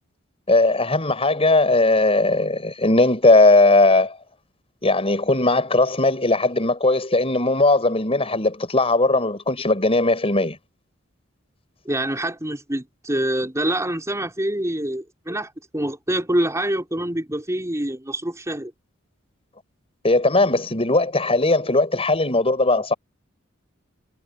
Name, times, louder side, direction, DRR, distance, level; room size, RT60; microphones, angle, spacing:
voice 1, 0.5-4.2 4.8-10.6 20.0-22.9, left 2 dB, 30° left, 7.0 m, -18 dB
voice 2, 11.8-18.7, right 1 dB, 15° right, 5.1 m, -26 dB
head